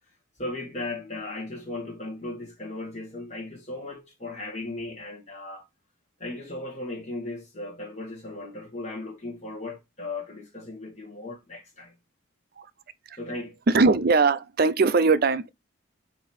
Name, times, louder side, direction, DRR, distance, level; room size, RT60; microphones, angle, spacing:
voice 1, 0.4-5.7 6.2-11.9 13.1-13.6, left 2 dB, 35° left, 1.6 m, -36 dB
voice 2, 13.7-15.5, right 4 dB, 45° right, 0.5 m, -20 dB
7.8 x 2.9 x 4.8 m
head